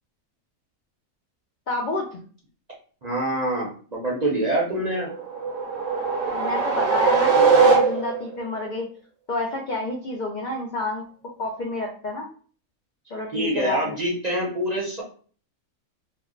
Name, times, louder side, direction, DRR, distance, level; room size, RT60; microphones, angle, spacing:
voice 1, 1.7-2.2 6.3-8.9 9.3-11.0 11.4-12.3 13.1-13.9, left 2 dB, 70° left, -1 dB, 0.4 m, -29 dB
voice 2, 3.0-5.1 13.3-15.0, right 1 dB, 40° right, -4 dB, 0.6 m, -25 dB
sound 1, 5.1-8.4, right 5 dB, 70° right, 1.0 m, -20 dB
2.6 x 2.1 x 3.7 m, 0.42 s
omnidirectional pair, 1.5 m